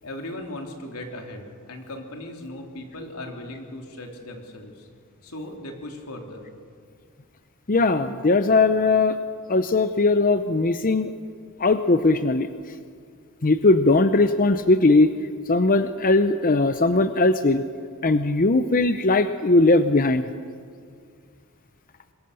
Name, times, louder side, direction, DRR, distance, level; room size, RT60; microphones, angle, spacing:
voice 1, 0.0-4.9 5.2-6.4, left 1 dB, 90° left, 2 dB, 3.6 m, -37 dB
voice 2, 7.7-9.2 9.5-11.1 11.6-12.5 13.4-15.1 15.5-17.6 18.0-20.3, left 2 dB, 40° left, 10 dB, 0.7 m, -19 dB
25.5 x 22.5 x 6.9 m, 2.1 s
head